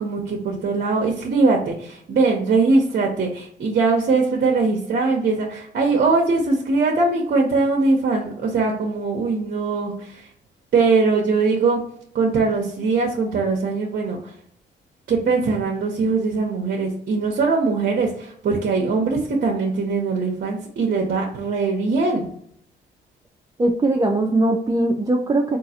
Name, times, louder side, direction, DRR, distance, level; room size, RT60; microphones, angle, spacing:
voice 1, 0.0-10.3 10.7-11.8 12.1-14.3 15.1-22.3, right 4 dB, 50° right, 0 dB, 0.7 m, -21 dB
voice 2, 23.6-25.6, right 2 dB, 20° right, 0 dB, 0.4 m, -20 dB
3.7 x 2.4 x 2.7 m, 0.65 s
cardioid pair, 90°, 20 cm